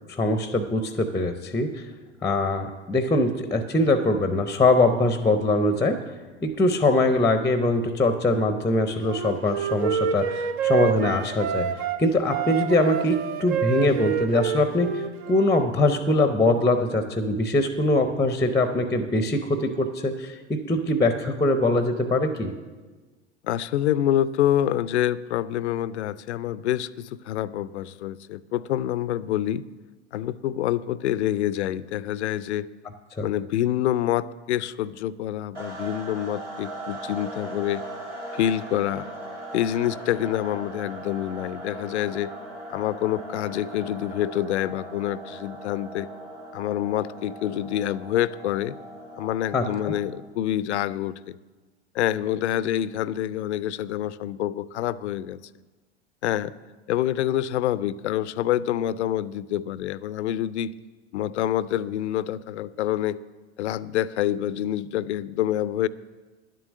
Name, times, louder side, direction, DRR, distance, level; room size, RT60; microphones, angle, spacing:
voice 1, 0.1-1.8 2.2-6.0 6.4-11.7 12.0-22.5 33.2-33.3 49.5-49.9, left 2 dB, 10° left, 9 dB, 0.6 m, -22 dB
Wind instrument woodwind instrument, 9.1-12.0 12.3-15.7, right 8 dB, 60° right, 0.9 m, -28 dB
voice 2, 23.4-29.6 30.1-32.7 33.2-37.8 38.3-39.1 39.5-42.3 42.7-46.1 46.5-48.8 49.2-51.4 51.9-55.4 56.2-56.5 56.9-60.7 61.1-63.2 63.6-65.9, left 12 dB, 70° left, 19 dB, 0.5 m, -26 dB
sound 1, 35.5-50.3, right 1 dB, 85° right, 3.4 m, -39 dB
10.5 x 7.6 x 6.4 m, 1.3 s
hypercardioid pair, 90°, 35 cm